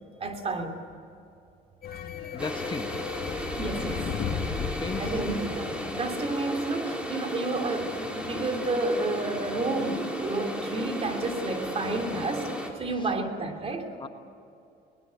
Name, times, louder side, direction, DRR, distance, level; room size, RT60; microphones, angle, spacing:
voice 1, 0.2-0.8 3.5-4.1 5.0-13.9, right 2 dB, 35° right, 5 dB, 3.1 m, -31 dB
sound 1, 1.8-6.7, left 7 dB, 60° left, 1.9 m, -35 dB
voice 2, 2.3-3.0 4.8-5.0 13.0-13.1 14.0-14.1, left 5 dB, 30° left, 7 dB, 1.3 m, -35 dB
sound 2, 2.4-12.7, equal, 5° right, 3.9 m, -34 dB
23.0 x 19.5 x 8.5 m, 2.6 s
cardioid pair, 110°, 17 cm